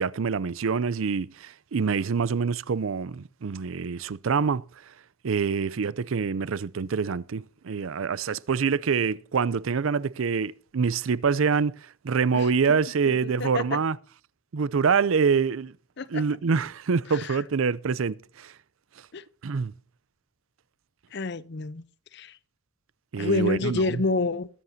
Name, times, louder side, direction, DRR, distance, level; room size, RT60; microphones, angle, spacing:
voice 1, 0.0-4.9 5.2-14.0 14.5-15.7 16.1-18.5 19.4-19.7 23.1-24.0, right 5 dB, 75° right, 0.5 m, -26 dB
voice 2, 13.1-13.6 16.0-16.2 17.1-17.4 19.1-19.2 21.1-21.8 22.1-22.3 23.2-24.5, left 3 dB, 55° left, 0.6 m, -28 dB
21.0 x 10.5 x 2.7 m
head